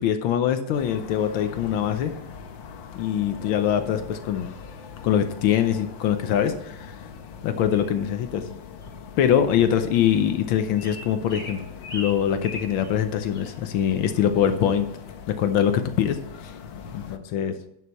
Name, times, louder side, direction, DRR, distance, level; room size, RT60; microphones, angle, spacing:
voice 1, 0.0-2.1 2.9-4.5 5.0-6.9 7.4-8.5 9.2-11.6 11.9-14.9 15.3-16.5 17.3-17.6, left 9 dB, 85° left, 8 dB, 1.5 m, -23 dB
sound 1, 0.7-17.2, left 6 dB, 70° left, 1.6 m, -41 dB
sound 2, 7.7-7.9 8.8-8.9 9.5-9.7 10.0-10.1 10.8-13.0 13.3-13.5 13.8-14.0 14.4-14.5, left 1 dB, 25° left, 3.0 m, -40 dB
11.0 x 6.5 x 4.1 m, 0.81 s
omnidirectional pair, 2.2 m